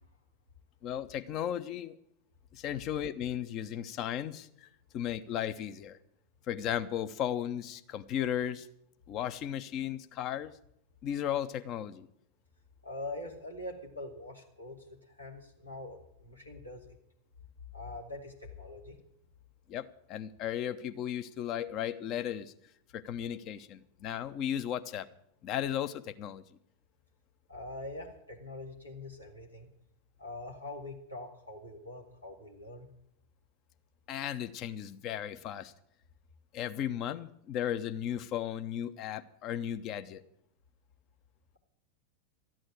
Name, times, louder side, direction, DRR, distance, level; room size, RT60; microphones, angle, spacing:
voice 1, 0.8-2.0 2.5-4.7 4.9-6.0 6.5-8.7 9.1-10.5 11.0-12.1 19.7-22.5 22.9-25.1 25.4-26.4 34.1-35.7 36.5-40.2, left 10 dB, 35° left, 11 dB, 0.8 m, -35 dB
voice 2, 12.8-17.0 17.7-19.0 27.5-29.7 30.2-32.9, left 2 dB, 85° left, 0 dB, 2.4 m, -44 dB
13.5 x 8.9 x 8.7 m, 0.73 s
figure-of-eight pair, 90°, 0 cm